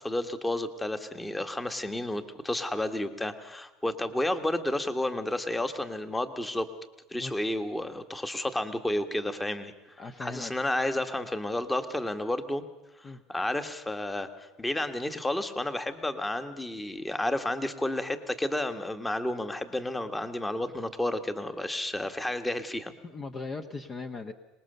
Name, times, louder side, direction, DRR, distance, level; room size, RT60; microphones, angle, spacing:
voice 1, 0.0-6.7 7.1-12.6 13.0-22.9, left 1 dB, 10° left, 9 dB, 1.6 m, -31 dB
voice 2, 10.0-10.5 13.0-13.2 23.0-24.3, left 3 dB, 30° left, 7 dB, 1.2 m, -38 dB
25.0 x 20.0 x 6.8 m, 1.0 s
supercardioid pair, 115°, 0 cm